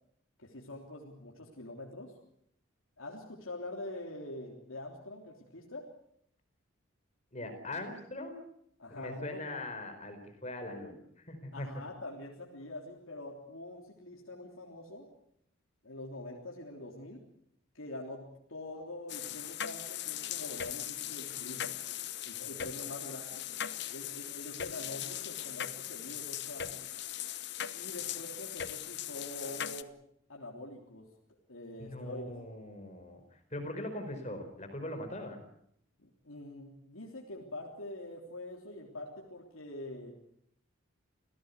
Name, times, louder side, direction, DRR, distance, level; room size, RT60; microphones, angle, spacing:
voice 1, 0.4-2.2 3.0-5.9 8.8-9.4 11.5-15.1 15.8-17.2 17.7-21.7 22.2-23.4 23.8-26.8 27.7-29.9 30.3-31.1 31.5-32.3 36.0-40.1, left 1 dB, 75° left, 0 dB, 3.4 m, -45 dB
voice 2, 7.3-8.4 9.0-11.8 31.8-33.2 33.5-35.4, left 1 dB, 35° left, 7 dB, 4.6 m, -41 dB
sound 1, 19.1-29.8, left 11 dB, 50° left, 0.9 m, -39 dB
27.5 x 17.0 x 8.2 m, 0.73 s
head